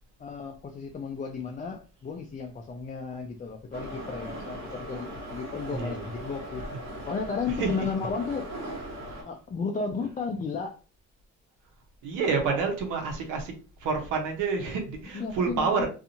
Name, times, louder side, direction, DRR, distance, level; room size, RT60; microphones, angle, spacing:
voice 1, 0.2-6.6 7.1-8.5 9.2-10.8 15.1-15.9, left 5 dB, 25° left, 0.4 m, -34 dB
Subway metro underground, 3.7-9.2, equal, 60° right, 1.3 m, -39 dB
voice 2, 5.7-6.0 7.6-7.9 12.0-15.9, right 5 dB, 90° right, 0.9 m, -28 dB
2.6 x 2.4 x 2.7 m
cardioid pair, 90°, 30 cm